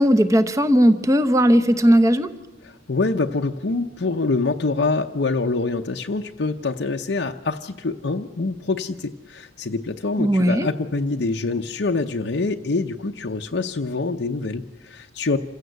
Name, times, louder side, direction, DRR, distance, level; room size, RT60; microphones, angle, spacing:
voice 1, 0.0-2.3 10.2-10.7, equal, 15° right, 9 dB, 0.9 m, -17 dB
voice 2, 2.6-15.4, left 3 dB, 60° left, 3 dB, 0.7 m, -25 dB
27.0 x 16.0 x 8.0 m, 1.3 s
head